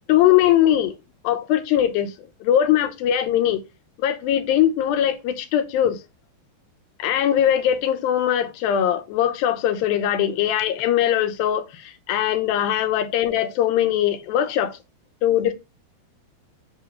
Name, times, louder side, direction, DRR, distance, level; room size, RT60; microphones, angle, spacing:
voice 1, 0.1-1.0 1.2-3.6 4.0-6.0 7.0-14.8 15.2-15.5, left 11 dB, 90° left, 2.6 m, -21 dB
8.1 x 2.9 x 6.2 m
omnidirectional pair, 4.1 m